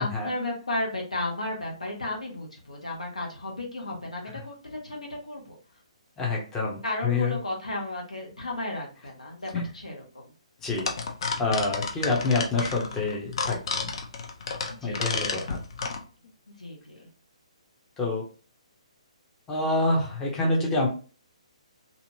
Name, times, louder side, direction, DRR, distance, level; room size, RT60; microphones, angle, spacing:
voice 1, 0.0-5.5 6.8-10.3 14.7-15.4 16.6-17.0, left 2 dB, 80° left, -1 dB, 1.2 m, -34 dB
voice 2, 6.2-7.4 9.5-9.6 10.6-10.9 11.4-13.9 14.8-15.6 18.0-18.3 19.5-20.9, left 3 dB, 15° left, -2 dB, 0.7 m, -27 dB
sound 1, 10.7-16.0, left 4 dB, 50° left, 0.6 m, -31 dB
2.7 x 2.5 x 2.7 m, 0.36 s
figure-of-eight pair, 135°, 4 cm